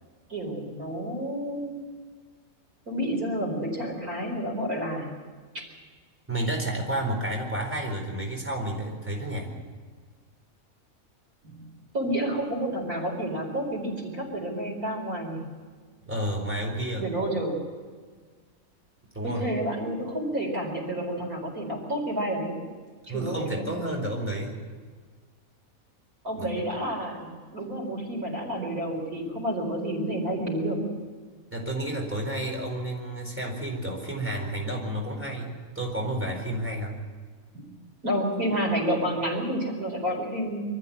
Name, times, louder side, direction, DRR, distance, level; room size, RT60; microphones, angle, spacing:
voice 1, 0.3-1.7 2.9-5.2 5.5-5.6 11.4-11.7 11.9-15.5 17.0-17.6 19.2-22.6 23.1-23.6 26.2-30.8 37.5-37.6 38.0-40.6, right 1 dB, 85° right, 0 dB, 5.2 m, -30 dB
voice 2, 6.3-9.5 16.0-17.1 19.1-19.5 23.1-24.6 26.4-26.5 31.5-37.0, right 1 dB, 10° right, -1 dB, 4.4 m, -31 dB
24.0 x 14.0 x 8.7 m, 1.5 s
omnidirectional pair, 1.5 m